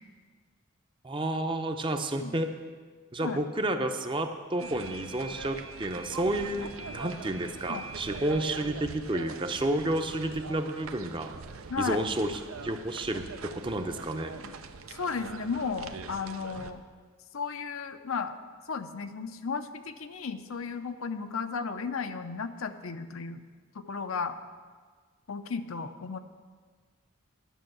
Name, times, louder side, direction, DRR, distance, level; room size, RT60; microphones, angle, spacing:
voice 1, 1.0-2.5 3.1-11.3 11.8-13.2 13.5-14.3, right 1 dB, 25° right, 6 dB, 0.6 m, -31 dB
sound 1, 4.6-16.7, right 4 dB, 85° right, 0.7 m, -42 dB
voice 2, 11.7-12.0 14.4-14.5 14.9-16.8 17.3-18.4 18.7-23.4 23.7-24.4 25.3-26.2, left 5 dB, 80° left, 9 dB, 0.7 m, -34 dB
11.0 x 6.3 x 7.8 m, 1.5 s
head